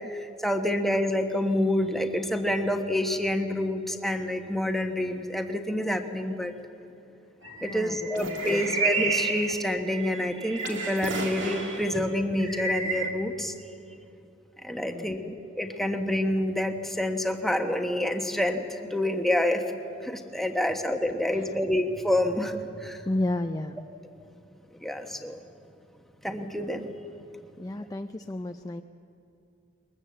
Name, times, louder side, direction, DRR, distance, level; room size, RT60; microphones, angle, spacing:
voice 1, 0.1-6.5 7.6-13.5 14.6-19.6 20.0-23.0 24.8-25.4 26.2-26.9, left 1 dB, ahead, 4 dB, 1.2 m, -28 dB
sound 1, 7.4-11.9 12.4-13.1, right 3 dB, 80° right, 2.6 m, -31 dB
voice 2, 7.6-8.8 14.8-15.3 20.7-20.8 21.3-21.5 23.1-23.9 27.6-28.8, left 1 dB, 20° left, 6 dB, 0.5 m, -33 dB
22.0 x 20.0 x 7.6 m, 2.5 s
head